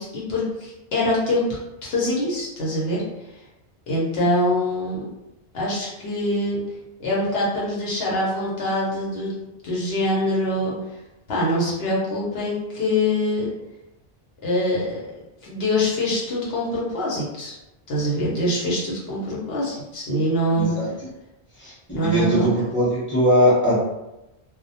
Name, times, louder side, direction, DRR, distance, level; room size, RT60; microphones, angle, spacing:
voice 1, 0.0-1.5 1.8-3.0 3.9-5.0 5.5-6.6 7.0-9.3 9.6-10.7 11.3-13.5 14.4-15.1 15.4-17.6 17.9-20.7 21.9-22.5, left 1 dB, 70° left, -6 dB, 0.9 m, -24 dB
voice 2, 20.5-20.9 21.6-21.7 22.0-23.9, equal, 10° left, -8 dB, 0.9 m, -20 dB
2.2 x 2.1 x 2.7 m, 0.94 s
omnidirectional pair, 1.1 m